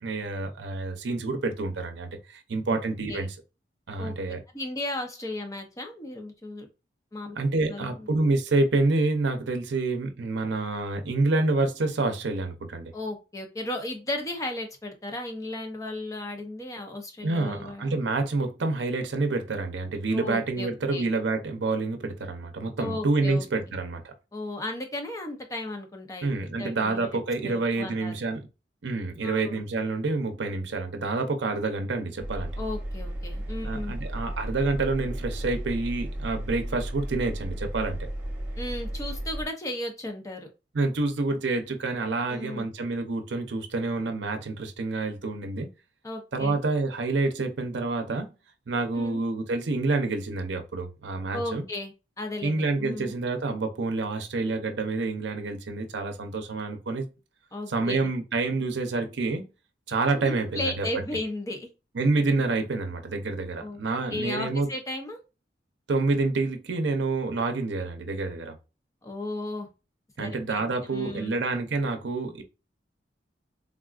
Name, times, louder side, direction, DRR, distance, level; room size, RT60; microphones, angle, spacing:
voice 1, 0.0-3.3 3.9-4.4 7.4-12.9 17.2-24.1 26.2-28.4 28.8-32.5 33.6-38.1 40.7-45.7 46.3-48.3 48.7-51.6 52.4-57.1 57.7-59.5 59.9-60.9 61.9-64.7 65.9-68.6 70.2-72.4, right 3 dB, 75° right, 0.6 m, -28 dB
voice 2, 4.5-6.7 7.1-7.4 7.6-8.1 12.9-17.9 20.1-21.1 22.8-23.5 24.3-26.3 26.6-28.1 29.2-29.6 32.6-33.9 38.6-40.5 42.3-42.7 46.0-46.6 48.9-49.2 51.3-53.1 57.5-58.1 60.2-61.7 63.6-63.8 64.1-65.2 69.0-69.7 70.2-71.3, left 1 dB, 20° left, 0.6 m, -35 dB
Engine, 32.2-39.5, right 1 dB, 10° right, 0.9 m, -34 dB
3.6 x 2.3 x 2.4 m
head